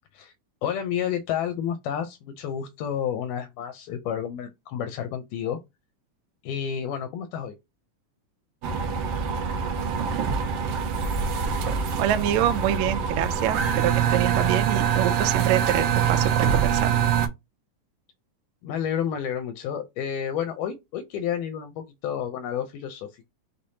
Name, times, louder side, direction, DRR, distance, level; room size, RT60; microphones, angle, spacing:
voice 1, 0.6-5.6 6.4-7.6 18.6-23.3, left 8 dB, 85° left, 2.2 m, -30 dB
sound 1, 8.6-17.3, right 7 dB, 65° right, 1.6 m, -24 dB
voice 2, 12.0-16.9, right 12 dB, 85° right, 1.6 m, -26 dB
5.4 x 3.3 x 2.7 m
omnidirectional pair, 3.7 m